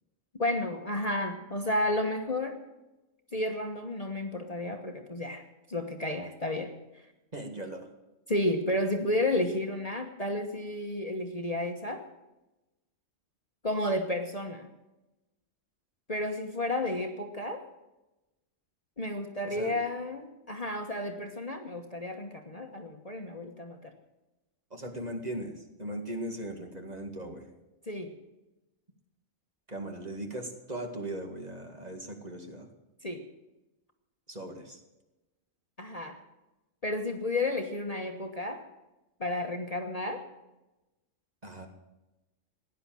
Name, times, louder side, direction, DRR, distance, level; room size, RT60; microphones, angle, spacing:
voice 1, 0.4-2.6 3.3-5.4 5.7-6.7 8.3-12.0 13.6-14.7 16.1-17.6 19.0-23.9 27.9-28.1 33.0-33.2 35.8-36.2 36.8-38.7 39.2-40.2, left 1 dB, 30° left, 3 dB, 1.3 m, -32 dB
voice 2, 7.3-7.9 19.4-19.7 24.7-25.5 25.8-27.5 29.7-32.7 34.3-34.8 41.4-41.7, right 1 dB, 30° right, 3 dB, 2.1 m, -38 dB
17.0 x 10.5 x 7.7 m, 1.0 s
omnidirectional pair, 1.3 m